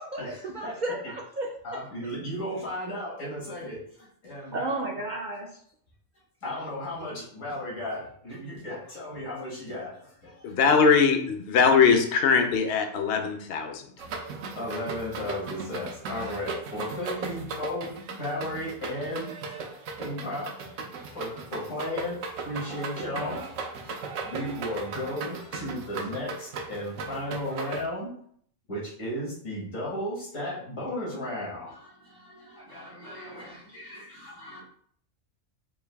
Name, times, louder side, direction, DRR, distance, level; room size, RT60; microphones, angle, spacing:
voice 1, 0.0-1.8 4.5-5.5, right 2 dB, 55° right, -1 dB, 0.5 m, -33 dB
voice 2, 0.6-1.0 1.6-5.1 6.4-10.6 14.6-17.9 18.2-23.6 23.8-28.1 28.7-34.6, left 1 dB, 80° left, -5 dB, 2.0 m, -35 dB
voice 3, 10.4-13.8, left 5 dB, 60° left, 5 dB, 0.8 m, -21 dB
sound 1, 14.0-27.8, right 4 dB, 80° right, 1.0 m, -37 dB
4.5 x 2.6 x 3.3 m, 0.63 s
omnidirectional pair, 1.3 m